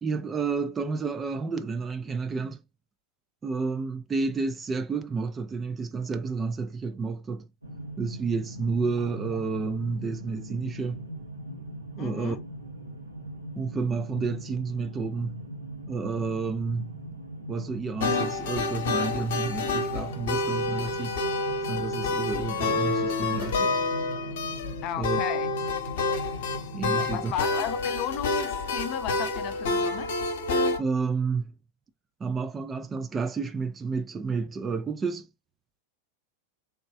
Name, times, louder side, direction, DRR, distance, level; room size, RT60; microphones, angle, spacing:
voice 1, 0.0-2.6 3.4-7.5 8.0-11.1 12.0-12.4 13.6-15.4 15.9-17.0 17.5-21.2 21.6-23.8 25.0-25.2 26.7-27.3 30.8-31.6 32.2-35.3, right 4 dB, 20° right, 0.4 m, -30 dB
sound 1, 7.6-27.2, right 1 dB, 85° right, 1.2 m, -40 dB
voice 2, 12.0-12.4 24.8-25.5 26.9-30.2, left 10 dB, 40° left, 0.5 m, -34 dB
sound 2, 18.0-30.8, left 3 dB, 55° left, 0.9 m, -28 dB
3.5 x 3.0 x 2.4 m
figure-of-eight pair, 90°, 0 cm